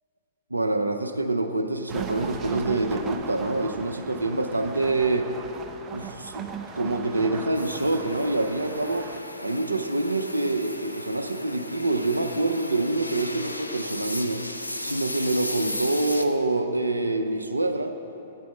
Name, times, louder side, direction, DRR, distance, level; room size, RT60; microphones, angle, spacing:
voice 1, 0.5-5.3 5.9-6.5 6.8-9.1 9.4-14.4 14.8-17.9, right 2 dB, 85° right, 6 dB, 0.5 m, -26 dB
sound 1, 1.9-9.2, right 6 dB, 20° right, 0.5 m, -38 dB
sound 2, 7.5-16.2, left 1 dB, 90° left, 0.5 m, -36 dB
8.1 x 5.1 x 7.5 m, 2.8 s
figure-of-eight pair, 110°, 0 cm